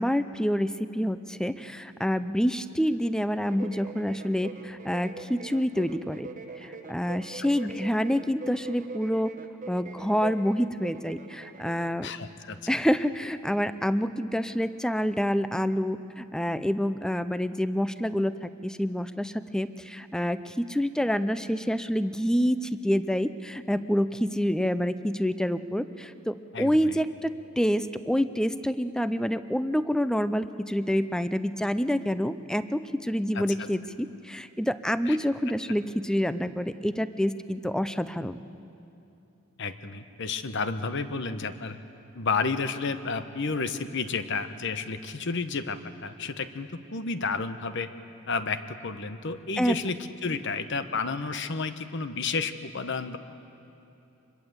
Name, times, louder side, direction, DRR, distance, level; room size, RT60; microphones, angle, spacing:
voice 1, 0.0-6.3 6.6-9.3 9.7-12.1 12.7-38.4 49.6-49.8, equal, 5° left, 13 dB, 0.5 m, -27 dB
sound 1, 3.4-12.0, right 3 dB, 40° right, 1.0 m, -43 dB
voice 2, 12.0-12.6 26.5-27.0 33.3-33.4 35.1-35.2 39.6-41.8 42.1-47.9 48.3-53.2, left 4 dB, 60° left, 11 dB, 1.0 m, -31 dB
25.5 x 21.5 x 8.1 m, 2.9 s
head